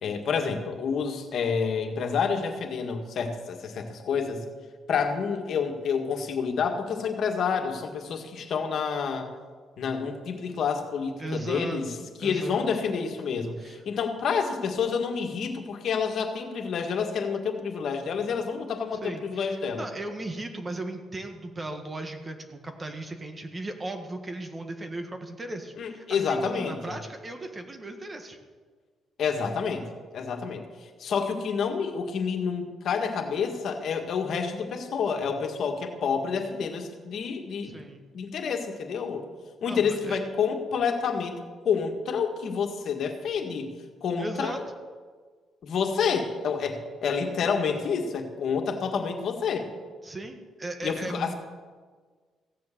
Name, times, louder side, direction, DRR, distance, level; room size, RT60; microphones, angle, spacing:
voice 1, 0.0-4.4 4.9-9.3 9.8-11.9 12.2-19.8 25.8-27.0 29.2-29.9 30.1-30.6 31.0-37.8 38.1-39.2 39.6-41.4 41.7-43.8 44.0-44.6 45.6-49.7 50.8-51.3, left 6 dB, 65° left, 4 dB, 1.8 m, -28 dB
voice 2, 11.2-12.7 13.6-13.8 19.0-28.4 37.6-38.0 39.7-40.2 44.2-44.6 50.0-51.3, right 2 dB, 25° right, 5 dB, 1.7 m, -37 dB
15.5 x 7.7 x 7.4 m, 1.5 s
cardioid pair, 90°, 0 cm